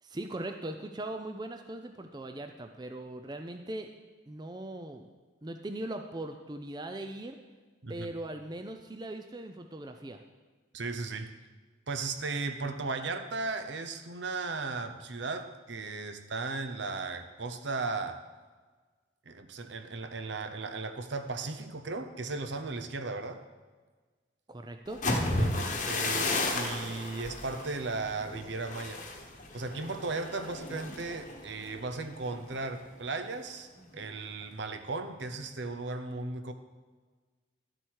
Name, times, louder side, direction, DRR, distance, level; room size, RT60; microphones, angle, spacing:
voice 1, 0.0-3.9 4.3-5.1 5.4-7.4 7.9-10.2 24.5-25.0, right 1 dB, 20° right, 6 dB, 0.5 m, -40 dB
voice 2, 10.7-11.3 11.9-18.2 19.3-23.4 25.4-29.0 29.5-36.5, right 3 dB, 65° right, 8 dB, 0.8 m, -36 dB
sound 1, 24.9-32.7 33.1-33.4 33.8-34.2, left 2 dB, 40° left, 1.1 m, -34 dB
11.5 x 7.8 x 4.7 m, 1.4 s
head